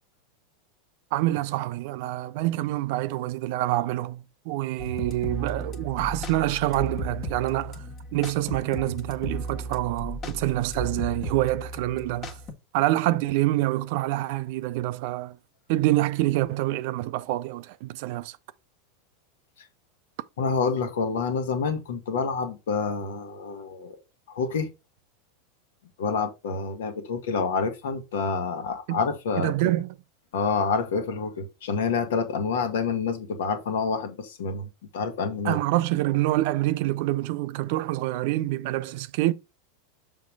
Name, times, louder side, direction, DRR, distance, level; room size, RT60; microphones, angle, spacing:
voice 1, 1.1-7.9 8.1-12.4 12.7-15.4 15.7-18.4 28.9-29.0 29.4-29.9 35.4-39.3, right 16 dB, 55° right, 0.5 m, -26 dB
sound 1, 4.8-12.5, equal, 35° left, 1.5 m, -35 dB
voice 2, 20.4-23.9 24.3-24.7 26.0-29.5 30.3-35.6, left 5 dB, 65° left, 1.3 m, -28 dB
6.6 x 3.7 x 4.7 m
figure-of-eight pair, 85°, 0 cm